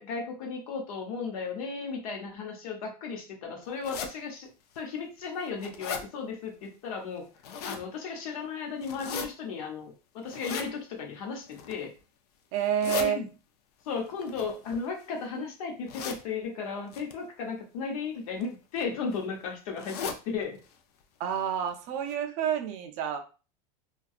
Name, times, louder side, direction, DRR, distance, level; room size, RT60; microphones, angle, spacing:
voice 1, 0.0-7.3 7.6-11.9 12.9-13.3 13.8-20.6, left 5 dB, 70° left, 2 dB, 0.8 m, -35 dB
sound 1, 3.8-4.1 4.7-4.8 5.3-6.0 7.2-7.8 8.8-9.3 10.3-10.7 11.4-11.8 12.6-13.1 14.2-15.2 15.9-16.2 16.9-17.1 18.1-18.4 18.8-18.9 19.1-19.2 19.8-20.2 20.6-20.7 21.0-21.1 21.7-21.8 22.1-22.2, left 6 dB, 85° left, 0.5 m, -37 dB
voice 2, 12.5-13.2 21.2-23.2, right 8 dB, 40° right, 5 dB, 0.4 m, -29 dB
2.6 x 2.2 x 2.4 m, 0.34 s
supercardioid pair, 165°, 19 cm